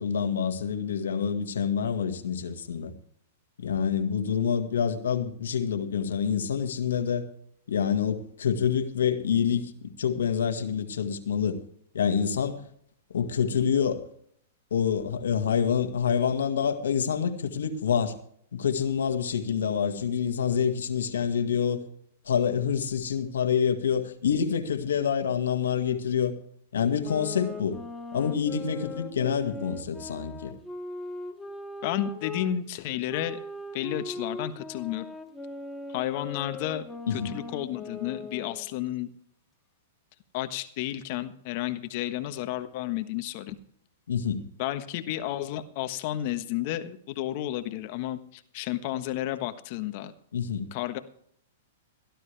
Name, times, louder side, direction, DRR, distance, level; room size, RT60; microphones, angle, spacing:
voice 1, 0.0-2.9 3.6-7.2 7.7-9.7 10.0-11.6 11.9-12.7 13.1-14.1 14.7-18.2 18.5-21.8 22.3-26.3 26.7-27.8 28.1-30.5 37.1-37.3 44.1-44.4 50.3-50.7, left 7 dB, 85° left, 1.9 m, -27 dB
sound 1, 26.9-32.5 33.1-38.7, left 2 dB, 5° left, 1.9 m, -39 dB
voice 2, 31.8-33.4 33.7-35.1 35.9-36.8 37.1-39.1 40.3-43.6 44.6-50.1 50.7-51.0, left 13 dB, 50° left, 1.3 m, -32 dB
17.5 x 12.0 x 3.4 m
hypercardioid pair, 135°, 0 cm